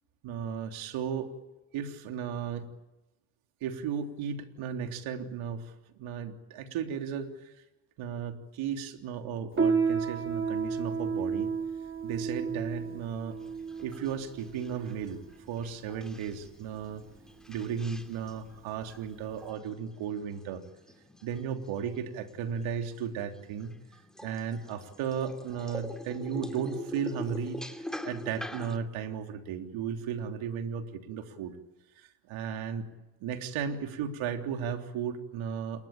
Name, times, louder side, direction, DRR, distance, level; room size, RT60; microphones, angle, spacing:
voice 1, 0.2-1.3 1.7-2.7 3.6-5.6 6.0-7.3 8.0-11.5 12.0-13.4 13.8-15.2 15.5-17.0 17.5-20.6 21.2-23.7 24.2-27.6 28.0-31.5 32.3-32.8 33.2-35.9, right 7 dB, 75° right, 5 dB, 3.5 m, -35 dB
Piano, 9.5-19.5, right 5 dB, 25° right, 2.8 m, -33 dB
sound 1, 13.3-28.8, left 1 dB, ahead, 2.9 m, -45 dB
28.0 x 22.5 x 9.0 m, 1.0 s
supercardioid pair, 70°, 49 cm